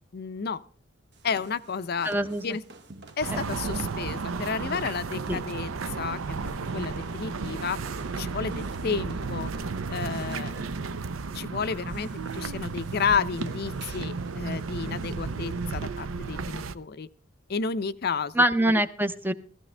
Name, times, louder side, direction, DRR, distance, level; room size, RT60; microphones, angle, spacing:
voice 1, 0.1-0.6 1.2-2.1 2.4-2.6 3.2-5.7 6.0-7.8 8.2-9.5 9.9-10.5 11.3-17.1 17.5-18.3 18.6-18.7, left 5 dB, 50° left, 13 dB, 0.5 m, -31 dB
sound 1, 1.1-15.8, right 2 dB, 55° right, 1.0 m, -48 dB
voice 2, 2.0-2.6 5.3-5.4 18.4-19.3, right 1 dB, 10° right, 11 dB, 0.6 m, -24 dB
sound 2, 3.2-16.7, right 4 dB, 90° right, 0.6 m, -33 dB
15.0 x 15.0 x 3.3 m, 0.40 s
head